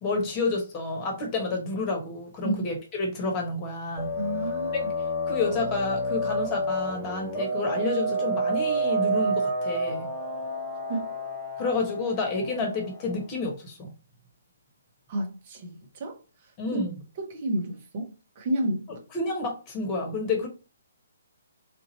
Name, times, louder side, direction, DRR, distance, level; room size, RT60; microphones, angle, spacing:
voice 1, 0.0-4.1 5.3-10.1 11.6-13.9 16.6-16.9 19.1-20.5, left 3 dB, 25° left, 1.3 m, -29 dB
sound 1, 4.0-13.2, right 1 dB, ahead, 1.0 m, -29 dB
voice 2, 4.2-4.9 10.9-11.1 15.1-16.8 17.2-19.0, right 1 dB, 40° right, 1.3 m, -31 dB
3.6 x 2.9 x 4.1 m
figure-of-eight pair, 135°, 0 cm